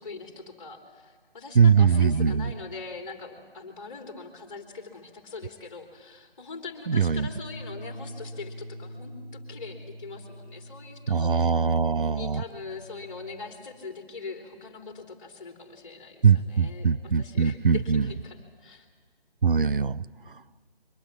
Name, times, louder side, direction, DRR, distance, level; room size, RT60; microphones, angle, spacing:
voice 1, 0.0-11.6 12.1-18.8, left 4 dB, 30° left, 3 dB, 3.1 m, -41 dB
voice 2, 1.5-2.5 6.9-7.3 11.1-12.4 16.2-18.1 19.4-20.0, right 6 dB, 60° right, 15 dB, 0.7 m, -22 dB
Bass guitar, 7.2-13.4, equal, 20° right, 7.2 m, -44 dB
23.5 x 20.0 x 8.7 m, 1.5 s
figure-of-eight pair, 160°, 31 cm